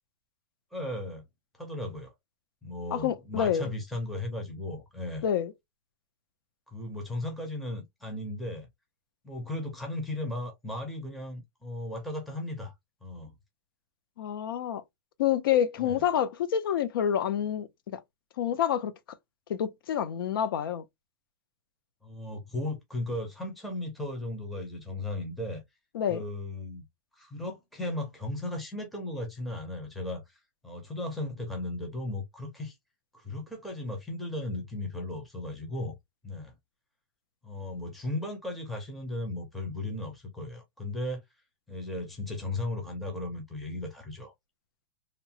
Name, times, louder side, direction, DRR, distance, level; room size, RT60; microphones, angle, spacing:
voice 1, 0.7-1.2 1.6-2.1 2.6-5.3 6.7-8.7 9.2-12.7 13.0-13.3 15.8-16.0 22.0-25.6 26.1-26.8 27.1-32.8 33.1-36.0 36.2-36.5 37.4-41.2 41.7-44.3, left 1 dB, ahead, 0.4 m, -36 dB
voice 2, 2.9-3.7 5.2-5.5 14.2-14.8 15.2-18.0 18.4-18.9 19.5-20.8 25.9-26.2, left 9 dB, 80° left, 0.5 m, -28 dB
2.9 x 2.0 x 2.7 m
supercardioid pair, 175°, 12 cm